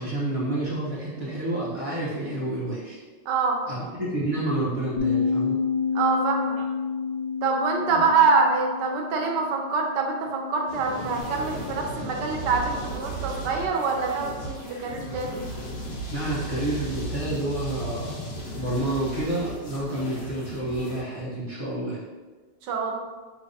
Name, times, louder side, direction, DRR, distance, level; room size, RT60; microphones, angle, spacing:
voice 1, 0.0-3.0 3.7-5.6 7.9-8.0 16.1-18.2 18.5-22.0, right 1 dB, 30° right, -8 dB, 0.7 m, -29 dB
voice 2, 3.3-3.6 5.9-6.6 7.4-15.4 22.6-22.9, right 4 dB, 75° right, 2 dB, 1.2 m, -25 dB
Bass guitar, 5.0-11.2, left 5 dB, 85° left, 1.6 m, -29 dB
sound 1, 10.7-21.0, right 1 dB, 70° left, 1.5 m, -36 dB
5.7 x 3.3 x 2.7 m, 1.3 s
omnidirectional pair, 2.0 m